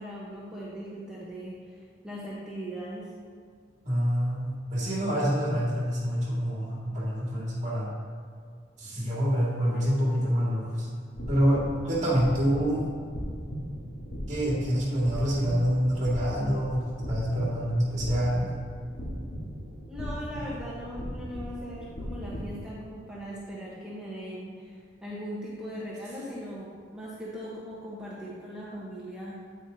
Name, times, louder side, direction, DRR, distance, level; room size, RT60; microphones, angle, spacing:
voice 1, 0.0-1.8 2.0-3.1 19.9-29.4, equal, 5° right, -8 dB, 1.1 m, -39 dB
voice 2, 3.8-4.5 4.7-7.9 8.8-10.9 11.3-12.8 14.3-18.5, equal, 35° right, -5 dB, 2.2 m, -26 dB
sound 1, 11.1-22.6, equal, 70° left, 1.5 m, -38 dB
9.1 x 8.9 x 2.8 m, 2.1 s
head